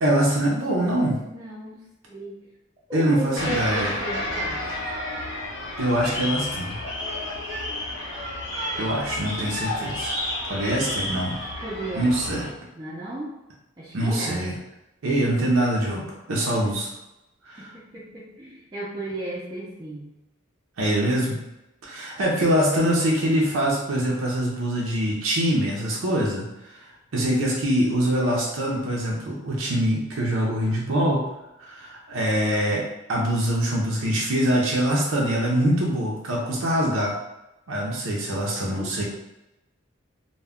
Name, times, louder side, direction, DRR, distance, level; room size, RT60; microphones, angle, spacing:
voice 1, 0.0-1.2 2.9-3.9 5.8-6.8 8.8-10.1 10.4-11.3 11.9-12.4 13.9-14.5 15.0-16.9 17.4-17.7 20.8-21.4 21.8-26.9 27.1-31.2 31.6-32.8 33.1-37.1 37.7-39.0, right 1 dB, 85° right, -3 dB, 0.5 m, -24 dB
voice 2, 1.3-2.4 2.9-4.9 11.0-11.3 11.6-12.1 12.4-13.4 13.8-14.5 17.6-20.1 38.7-39.0, right 2 dB, 20° right, -9 dB, 0.4 m, -35 dB
sound 1, 3.4-12.5, left 1 dB, 75° left, 0.9 m, -31 dB
2.2 x 2.1 x 3.5 m, 0.93 s
head